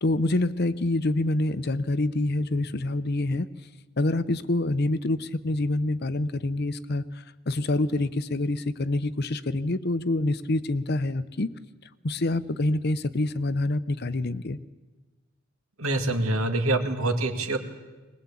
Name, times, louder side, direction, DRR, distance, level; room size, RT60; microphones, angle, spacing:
voice 1, 0.0-3.5 4.0-11.5 12.0-14.6, left 2 dB, 45° left, 14 dB, 0.8 m, -26 dB
voice 2, 15.8-17.6, right 2 dB, 70° right, 6 dB, 2.3 m, -25 dB
21.0 x 21.0 x 8.5 m, 1.2 s
head